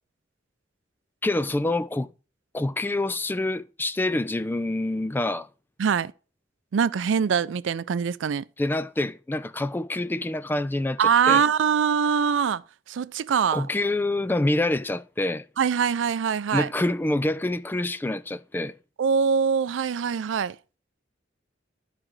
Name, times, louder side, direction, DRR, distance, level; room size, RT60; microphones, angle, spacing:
voice 1, 1.2-2.1 2.5-5.5 8.6-11.4 13.5-15.4 16.5-18.7, left 2 dB, 10° left, 0.3 m, -26 dB
voice 2, 5.8-6.1 6.7-8.4 11.0-12.6 12.9-13.7 15.6-16.7 19.0-20.6, right 7 dB, 80° right, 0.4 m, -23 dB
13.0 x 4.9 x 3.2 m
head